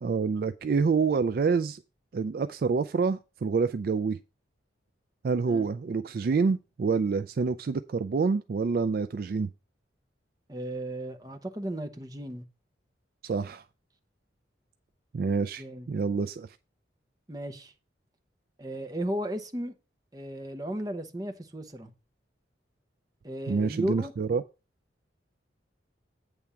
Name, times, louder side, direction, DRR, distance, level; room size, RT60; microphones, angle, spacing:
voice 1, 0.0-1.8 2.1-4.2 5.2-9.5 13.2-13.6 15.1-16.5 23.5-24.4, right 5 dB, 50° right, 0.3 m, -27 dB
voice 2, 10.5-12.4 15.6-15.9 17.3-17.7 18.6-19.7 20.1-21.9 23.2-24.1, right 1 dB, 20° right, 0.9 m, -35 dB
8.7 x 3.5 x 6.8 m
head